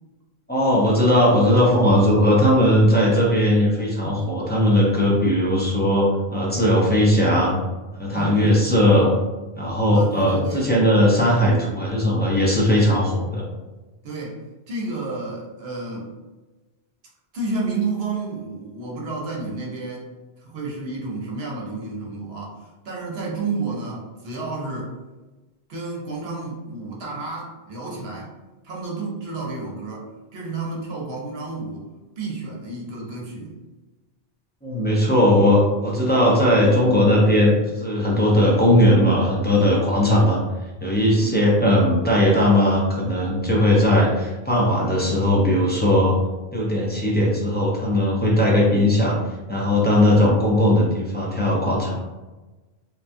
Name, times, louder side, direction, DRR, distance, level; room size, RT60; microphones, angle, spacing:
voice 1, 0.5-7.6 8.0-9.1 9.6-13.5 34.6-40.4 40.8-46.1 46.5-49.2 49.5-52.0, left 1 dB, 15° left, -6 dB, 0.3 m, -18 dB
voice 2, 8.1-8.6 9.9-10.7 14.0-14.4 14.7-16.1 17.3-20.1 20.4-24.9 25.7-28.3 28.6-30.1 30.3-31.9 32.2-33.6 41.2-41.4, right 3 dB, 70° right, -3 dB, 1.0 m, -31 dB
3.0 x 2.3 x 2.5 m, 1.2 s
omnidirectional pair, 1.1 m